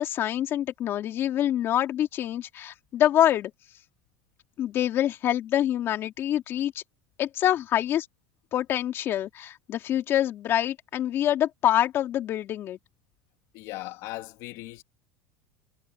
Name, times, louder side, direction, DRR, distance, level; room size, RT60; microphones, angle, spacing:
voice 1, 0.0-3.5 4.6-6.8 7.2-8.1 8.5-12.8, left 11 dB, 35° left, 3.0 m, -26 dB
voice 2, 13.5-14.8, left 19 dB, 55° left, 2.5 m, -38 dB
supercardioid pair, 155°, 7 cm